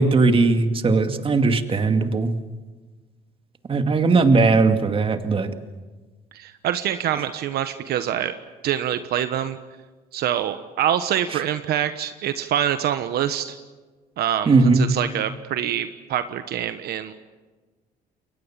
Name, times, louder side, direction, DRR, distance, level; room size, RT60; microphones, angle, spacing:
voice 1, 0.0-2.3 3.7-5.5 11.3-11.4 14.5-14.8, right 3 dB, 30° right, 7 dB, 2.3 m, -18 dB
voice 2, 6.3-8.4 8.6-9.6 10.1-13.6 14.2-17.1, right 10 dB, 70° right, 10 dB, 1.3 m, -25 dB
30.0 x 22.5 x 7.4 m, 1.3 s
cardioid pair, 110°, 17 cm